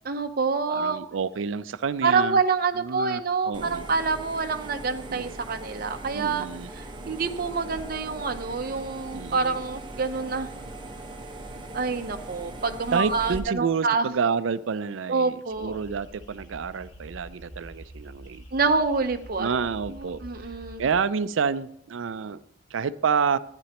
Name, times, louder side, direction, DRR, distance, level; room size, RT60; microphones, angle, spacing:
voice 1, 0.1-1.0 2.0-6.5 6.8-10.5 11.7-14.0 15.1-15.8 18.5-19.5 20.0-20.8, right 4 dB, 50° right, 7 dB, 0.7 m, -27 dB
voice 2, 0.7-2.4 2.7-3.9 5.1-5.3 6.1-6.7 9.1-9.6 12.9-18.4 19.4-20.2 20.8-22.4 22.7-23.4, right 6 dB, 80° right, 15 dB, 0.4 m, -29 dB
sound 1, 3.5-13.4, right 2 dB, 25° right, 1.2 m, -40 dB
sound 2, 15.5-20.9, right 1 dB, 70° left, 2.2 m, -46 dB
14.5 x 9.8 x 2.9 m, 0.73 s
head